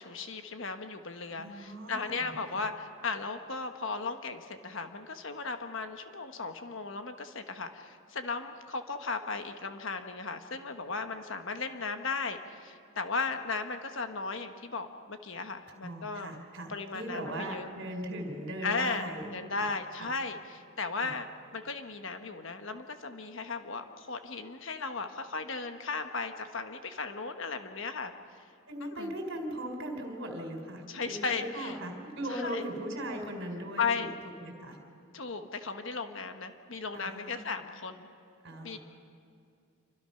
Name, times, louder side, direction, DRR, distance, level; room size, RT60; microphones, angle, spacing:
voice 1, 0.0-16.3 16.7-17.7 18.6-21.3 21.5-28.4 28.8-29.1 30.9-31.8 32.3-32.6 33.8-34.1 35.1-38.1 38.6-38.8, left 4 dB, 55° left, 7 dB, 1.2 m, -36 dB
voice 2, 1.4-2.3 15.8-19.3 19.6-19.7 20.0-20.1 21.0-21.1 28.7-34.1 34.4-34.8 36.9-37.5 38.4-38.8, right 1 dB, 55° right, 3 dB, 4.0 m, -39 dB
27.5 x 24.5 x 5.8 m, 2.4 s
head